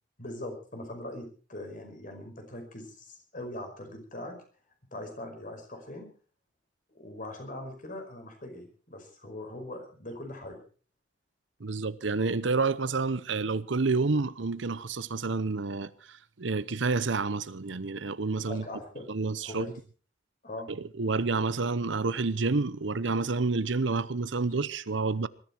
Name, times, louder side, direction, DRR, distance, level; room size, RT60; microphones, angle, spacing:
voice 1, 0.2-4.3 4.9-6.1 6.9-10.6 18.5-19.0 19.4-19.7 20.4-20.7, left 1 dB, 45° left, 5.2 m, -41 dB
voice 2, 11.6-18.7 19.1-19.7 20.7-25.3, right 3 dB, 75° right, 0.8 m, -29 dB
20.5 x 14.0 x 4.5 m
head